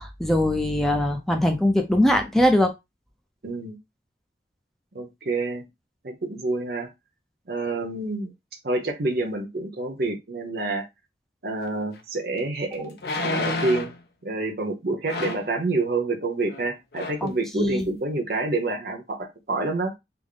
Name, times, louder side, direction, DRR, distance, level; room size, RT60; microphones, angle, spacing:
voice 1, 0.0-2.7 17.2-17.9, left 1 dB, ahead, 0.4 m, -22 dB
voice 2, 3.4-3.8 4.9-5.7 6.0-6.9 7.5-8.3 8.6-10.8 11.4-13.9 14.2-19.9, right 2 dB, 55° right, 0.7 m, -28 dB
sound 1, 12.0-12.1 13.0-14.0 15.1-15.5 16.5-16.7 16.9-17.3 17.8-17.9, left 2 dB, 60° left, 0.6 m, -30 dB
3.4 x 2.0 x 3.7 m
head